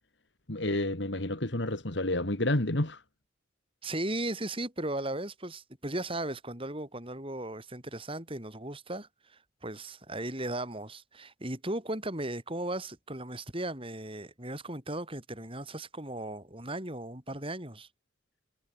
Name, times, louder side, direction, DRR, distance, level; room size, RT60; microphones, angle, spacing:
voice 1, 0.5-3.0, left 1 dB, 65° left, 2.6 m, -29 dB
voice 2, 3.8-17.9, right 1 dB, 30° right, 6.7 m, -36 dB
head